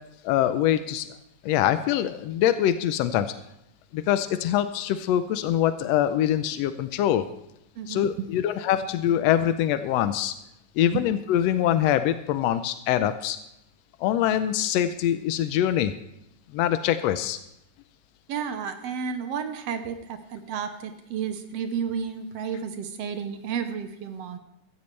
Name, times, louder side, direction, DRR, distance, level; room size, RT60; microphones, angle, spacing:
voice 1, 0.2-1.1 1.4-3.3 3.9-7.2 7.9-10.3 10.8-13.4 14.0-15.9 16.5-17.4, left 11 dB, 85° left, 10 dB, 1.4 m, -24 dB
voice 2, 7.8-8.3 10.9-11.0 18.3-24.4, right 7 dB, 65° right, 8 dB, 1.7 m, -32 dB
15.5 x 14.5 x 3.3 m, 0.83 s
omnidirectional pair, 3.7 m